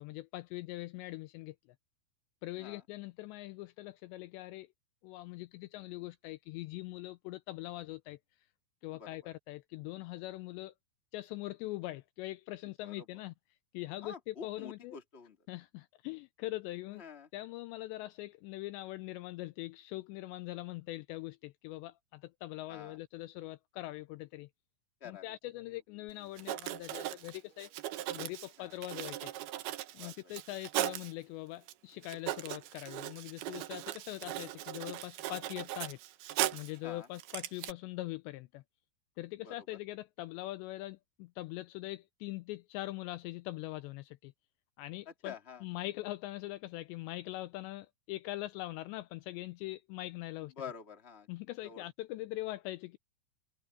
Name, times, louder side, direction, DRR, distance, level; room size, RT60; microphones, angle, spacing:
voice 1, 0.0-1.6 2.4-4.7 5.0-8.2 8.8-10.7 11.1-13.3 13.7-15.0 15.5-17.0 17.3-24.5 25.1-27.7 28.1-29.3 29.9-36.0 36.5-38.6 39.2-44.3 44.8-45.3 45.6-50.5 51.3-53.0, left 17 dB, 90° left, 2.5 m, -42 dB
voice 2, 8.9-9.3 12.8-13.0 14.0-15.4 16.9-17.3 22.7-23.0 25.0-25.3 25.7-25.8 28.6-28.8 29.9-30.3 36.8-37.1 39.4-39.6 45.1-45.6 50.4-51.3 51.6-51.8, left 6 dB, 20° left, 1.9 m, -48 dB
Writing, 26.1-26.2 26.4-31.1 31.7-31.8 32.0-36.8 37.2-37.7, right 14 dB, 75° right, 2.4 m, -38 dB
omnidirectional pair, 5.6 m